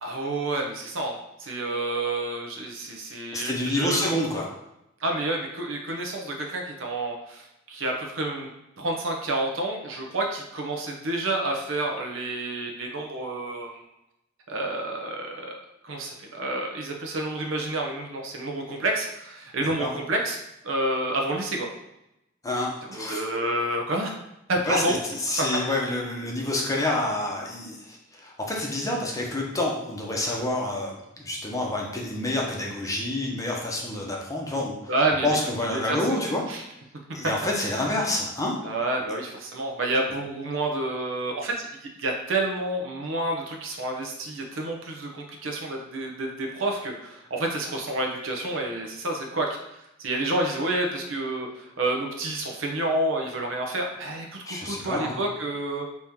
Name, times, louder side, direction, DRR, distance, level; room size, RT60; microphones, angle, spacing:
voice 1, 0.0-4.1 5.0-8.5 8.8-13.8 14.5-20.4 20.6-21.7 22.9-24.1 24.5-25.0 34.9-35.3 35.7-36.6 38.6-49.5 50.0-55.9, right 2 dB, 75° right, 1 dB, 0.8 m, -29 dB
voice 2, 3.3-4.5 19.8-19.9 22.4-23.2 24.7-25.0 25.2-34.7 35.2-36.4 37.1-38.5 54.5-55.2, left 1 dB, 15° left, -1 dB, 0.8 m, -28 dB
4.1 x 3.1 x 3.6 m, 0.88 s
head